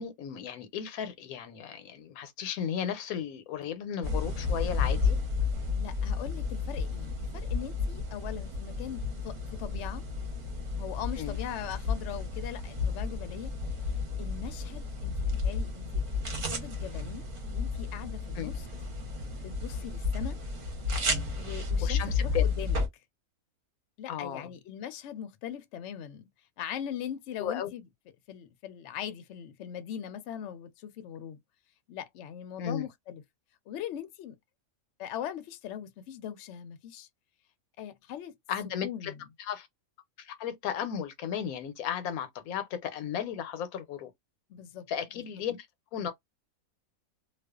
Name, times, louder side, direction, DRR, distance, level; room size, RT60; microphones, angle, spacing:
voice 1, 0.0-5.2 11.2-11.4 18.4-18.5 21.8-22.4 24.1-24.5 27.4-27.7 32.6-32.9 38.5-39.1 39.4-39.7 40.2-44.1 44.9-45.7 45.9-46.1, left 8 dB, 85° left, 1.1 m, -35 dB
sound 1, 4.0-22.9, left 4 dB, 45° right, 0.9 m, -32 dB
voice 2, 5.7-10.0 10.8-13.5 14.2-16.0 16.4-17.2 17.5-18.7 19.4-20.4 21.4-22.8 24.0-26.3 26.6-27.8 28.3-31.4 31.9-33.2 33.7-34.4 35.0-37.1 37.8-38.3 38.8-39.2 44.5-44.9 45.1-45.2, left 10 dB, 65° left, 0.8 m, -40 dB
2.4 x 2.3 x 2.3 m
omnidirectional pair, 1.5 m